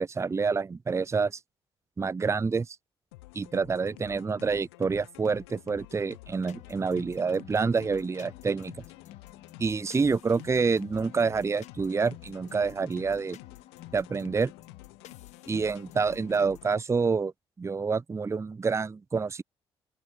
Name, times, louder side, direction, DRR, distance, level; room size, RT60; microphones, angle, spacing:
voice 1, 0.0-1.4 2.0-2.8 3.3-8.7 9.6-13.4 13.9-14.5 15.5-17.3 17.6-19.4, right 5 dB, 20° right, 0.5 m, -27 dB
sound 1, 3.1-16.8, left 22 dB, 80° left, 0.8 m, -50 dB
sound 2, 6.5-16.8, left 13 dB, 60° left, 1.1 m, -51 dB
open air
figure-of-eight pair, 45°, 13 cm